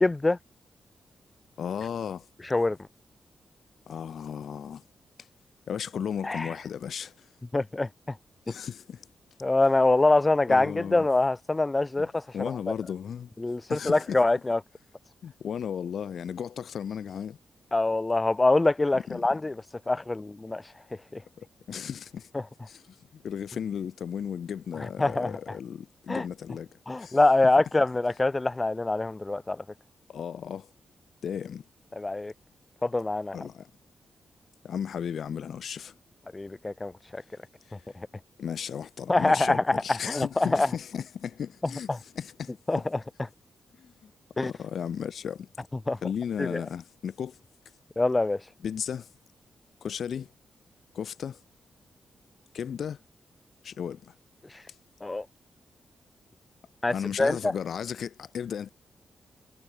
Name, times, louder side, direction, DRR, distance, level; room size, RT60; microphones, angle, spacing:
voice 1, 0.0-0.4 2.5-2.8 6.2-6.5 7.5-8.2 9.4-12.5 13.4-14.6 17.7-19.6 19.9-20.6 21.1-21.2 22.3-22.4 25.0-25.4 26.1-26.3 26.9-29.6 31.9-32.3 32.8-33.4 36.3-37.2 37.9-38.1 39.1-40.7 41.9-42.0 42.7-42.8 44.4-44.5 45.9-46.0 46.4-46.6 48.0-48.4 55.0-55.3 56.8-57.5, left 2 dB, 20° left, 0.5 m, -24 dB
voice 2, 1.6-2.3 3.9-4.8 5.7-7.3 8.5-9.1 10.5-11.1 12.0-12.1 12.3-13.3 13.7-14.2 15.2-17.4 19.1-19.2 21.4-22.3 22.7-26.7 27.0-27.2 30.1-30.7 31.2-31.6 33.3-33.7 34.6-35.9 37.7-37.8 38.4-42.6 43.8-44.1 44.4-45.5 46.0-47.4 48.6-49.1 49.8-50.3 50.9-51.4 52.5-53.0 53.6-54.1 56.9-58.7, left 8 dB, 70° left, 3.6 m, -35 dB
wide cardioid pair, 115°, 0 cm